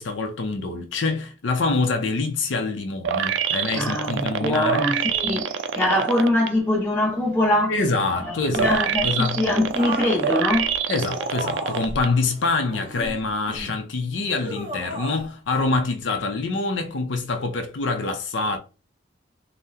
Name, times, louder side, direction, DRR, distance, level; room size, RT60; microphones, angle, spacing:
voice 1, 0.0-4.9 7.7-9.7 10.9-18.6, left 3 dB, 70° left, 0.5 m, -25 dB
sound 1, 3.0-6.5 7.0-12.1 12.5-12.6, right 7 dB, 75° right, 0.3 m, -26 dB
voice 2, 3.7-7.8 8.2-10.7, left 1 dB, 10° left, 1.1 m, -23 dB
sound 2, 8.5-9.1 9.7-12.0 12.7-13.8 14.4-15.2 15.5-15.7, right 1 dB, 25° right, 1.1 m, -34 dB
3.5 x 2.1 x 2.7 m
head